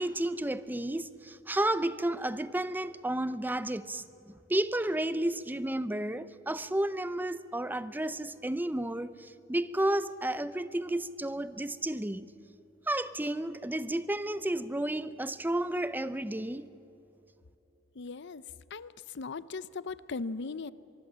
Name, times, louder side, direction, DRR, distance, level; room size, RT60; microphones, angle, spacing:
voice 1, 0.0-4.0 4.5-9.2 9.5-12.3 12.9-16.7, right 1 dB, 10° right, 0.6 m, -32 dB
voice 2, 18.0-18.4 18.7-20.7, left 4 dB, 60° left, 0.6 m, -38 dB
24.0 x 23.5 x 7.5 m
head